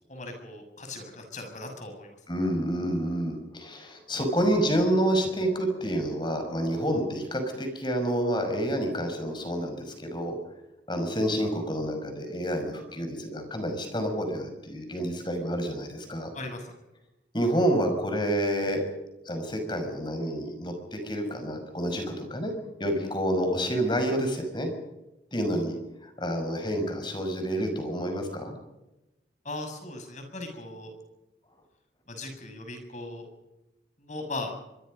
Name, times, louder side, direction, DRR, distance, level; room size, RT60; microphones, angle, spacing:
voice 1, 0.1-2.1 16.3-16.7 29.4-30.9 32.1-33.3 34.0-34.5, left 2 dB, 45° left, 5 dB, 6.8 m, -38 dB
voice 2, 2.3-10.4 10.9-16.3 17.3-18.8 19.3-22.5 22.8-24.7 25.3-25.8 26.0-28.6, equal, 25° left, 6 dB, 5.8 m, -28 dB
25.0 x 23.5 x 5.4 m, 0.97 s
head